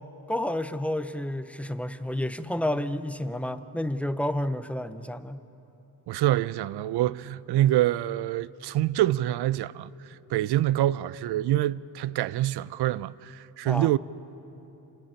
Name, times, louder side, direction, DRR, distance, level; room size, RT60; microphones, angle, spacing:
voice 1, 0.3-5.4 13.6-13.9, left 1 dB, 5° left, 0.5 m, -30 dB
voice 2, 6.1-14.0, right 14 dB, 85° right, 0.5 m, -26 dB
28.0 x 11.0 x 8.9 m
cardioid pair, 140°, 38 cm